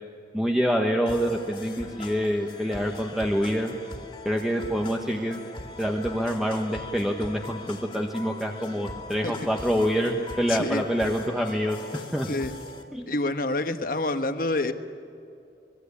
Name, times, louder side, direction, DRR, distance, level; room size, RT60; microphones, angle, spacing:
voice 1, 0.3-3.7 4.2-5.4 5.8-12.3 12.9-13.0, equal, ahead, 1 dB, 1.2 m, -26 dB
sound 1, 1.1-12.8, left 2 dB, 25° left, 2.4 m, -41 dB
voice 2, 10.5-10.8 12.3-12.5 13.1-14.7, left 2 dB, 50° left, 8 dB, 1.3 m, -27 dB
25.5 x 21.5 x 8.4 m, 2.6 s
head